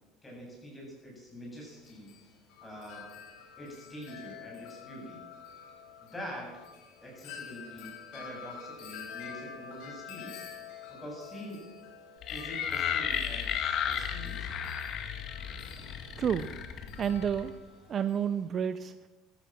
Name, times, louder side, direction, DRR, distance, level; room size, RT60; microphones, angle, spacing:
voice 1, 0.2-2.3 2.6-3.1 3.6-5.2 6.1-6.5 7.0-10.5 10.9-11.6 12.3-14.6, equal, 15° left, -2 dB, 8.0 m, -45 dB
Wind chime, 1.5-18.4, left 7 dB, 70° left, 3.8 m, -48 dB
sound 1, 12.2-17.5, left 8 dB, 50° left, 1.9 m, -34 dB
voice 2, 15.8-16.6 17.0-17.6 17.9-19.1, right 8 dB, 35° right, 13 dB, 0.6 m, -31 dB
13.5 x 13.5 x 7.7 m, 1.1 s
cardioid pair, 125°, 0 cm